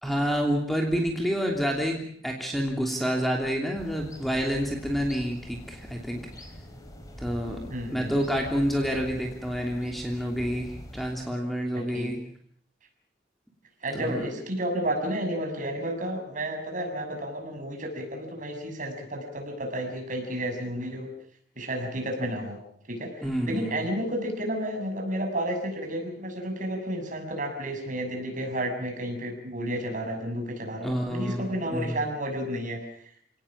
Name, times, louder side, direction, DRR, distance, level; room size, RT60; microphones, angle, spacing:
voice 1, 0.0-6.2 7.2-12.2 13.9-14.2 23.2-23.8 30.8-32.0, equal, ahead, 1 dB, 3.1 m, -28 dB
sound 1, 3.8-11.1, equal, 20° left, 4.4 m, -44 dB
voice 2, 7.7-8.1 11.7-12.1 13.8-21.1 21.6-22.5 22.9-32.8, right 1 dB, 45° right, 3 dB, 6.5 m, -31 dB
29.0 x 18.5 x 7.3 m, 0.63 s
head